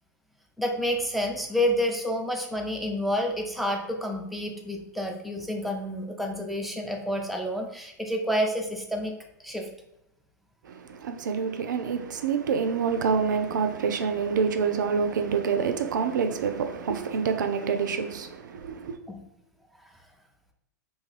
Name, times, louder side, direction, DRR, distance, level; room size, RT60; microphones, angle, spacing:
voice 1, 0.6-9.1 9.4-9.7 19.1-19.2, equal, ahead, 0.5 m, -29 dB
voice 2, 10.6-19.0, right 6 dB, 75° right, 0.4 m, -27 dB
2.6 x 2.3 x 3.2 m
hypercardioid pair, 105°, 10 cm